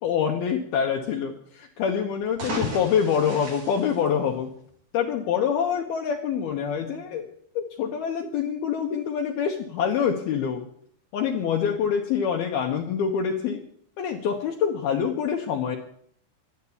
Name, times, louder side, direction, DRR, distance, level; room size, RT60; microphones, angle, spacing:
voice 1, 0.0-4.5 4.9-7.3 7.6-10.6 11.1-13.6 14.0-15.8, left 7 dB, 70° left, 1 dB, 2.6 m, -26 dB
sound 1, 2.2-4.8, left 1 dB, 55° right, 6.0 m, -34 dB
12.0 x 11.5 x 8.4 m, 0.64 s
omnidirectional pair, 5.4 m